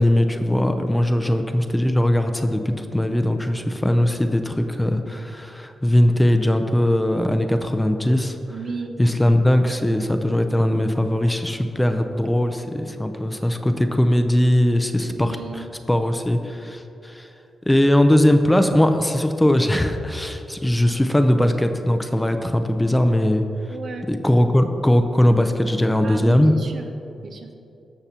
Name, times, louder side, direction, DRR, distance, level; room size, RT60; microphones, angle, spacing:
voice 1, 0.0-8.4 9.0-15.6 15.9-17.3 17.7-23.4 24.1-26.6, left 1 dB, 10° left, 7 dB, 0.6 m, -20 dB
voice 2, 1.1-1.4 8.5-9.0 15.0-15.7 23.7-24.1 26.0-26.9 27.2-27.6, right 4 dB, 60° right, 5 dB, 0.7 m, -34 dB
13.5 x 5.8 x 2.9 m, 2.8 s
cardioid pair, 65°, 0 cm